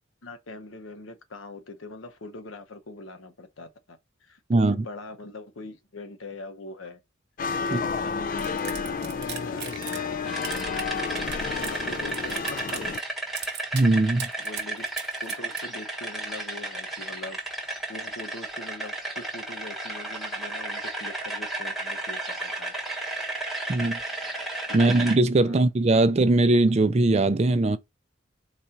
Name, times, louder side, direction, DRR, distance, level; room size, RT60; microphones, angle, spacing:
voice 1, 0.2-7.0 7.6-11.2 11.6-13.0 14.4-14.9 15.2-17.4 17.9-22.7 23.7-23.9 24.7-24.9 25.4-25.7, left 2 dB, 85° left, 0.9 m, -42 dB
sound 1, 7.4-13.0, left 5 dB, 45° left, 0.3 m, -31 dB
sound 2, 8.4-10.1 10.4-11.8 12.1-13.0 13.4-13.9 14.2-15.6, right 8 dB, 55° right, 1.0 m, -38 dB
sound 3, 10.3-25.2, right 2 dB, ahead, 1.2 m, -33 dB
voice 2, 13.7-14.3 23.7-24.0 24.7-27.8, right 2 dB, 30° right, 0.4 m, -20 dB
4.1 x 2.5 x 4.5 m
head